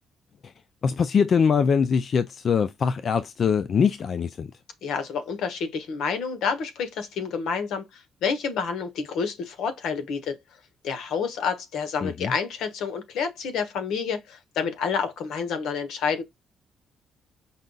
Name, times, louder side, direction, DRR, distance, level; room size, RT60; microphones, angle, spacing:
voice 1, 0.8-4.5 12.0-12.3, left 6 dB, 50° left, 0.4 m, -23 dB
voice 2, 4.8-10.4 10.8-16.2, left 6 dB, 80° left, 1.0 m, -29 dB
5.4 x 2.3 x 3.8 m
cardioid pair, 90°, 0 cm